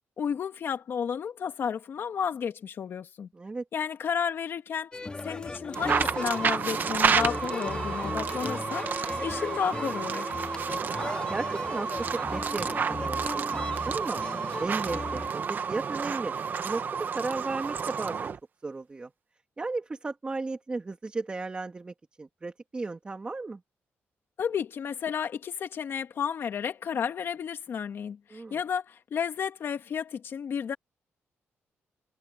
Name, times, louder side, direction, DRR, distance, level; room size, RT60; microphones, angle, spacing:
voice 1, 0.2-3.3 3.7-4.9 5.2-8.9 9.2-10.3 24.4-30.8, left 7 dB, 55° left, 2.4 m, -32 dB
voice 2, 3.3-3.6 11.0-14.2 14.6-16.3 16.6-18.3 18.6-19.1 19.6-23.6 28.3-28.6, right 3 dB, 20° right, 2.3 m, -35 dB
sound 1, 4.9-15.3, left 3 dB, 20° left, 1.8 m, -37 dB
sound 2, 5.7-18.4, right 6 dB, 40° right, 1.0 m, -30 dB
wide cardioid pair, 145°, 5 cm